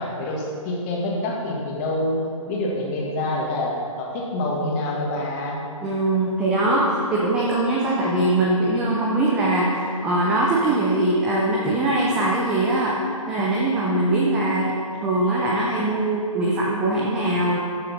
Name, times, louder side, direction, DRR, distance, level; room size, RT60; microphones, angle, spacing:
voice 1, 0.0-5.6, left 1 dB, 25° left, -2 dB, 1.7 m, -26 dB
voice 2, 5.8-14.8 15.0-17.6, right 2 dB, 5° right, -4 dB, 0.3 m, -22 dB
13.5 x 6.6 x 4.1 m, 2.4 s
figure-of-eight pair, 145°, 18 cm